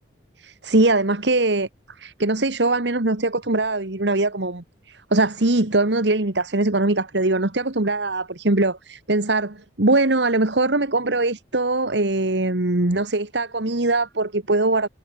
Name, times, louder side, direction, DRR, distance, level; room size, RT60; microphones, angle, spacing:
voice 1, 0.4-1.7 2.0-14.9, right 2 dB, 65° right, 1.8 m, -21 dB
head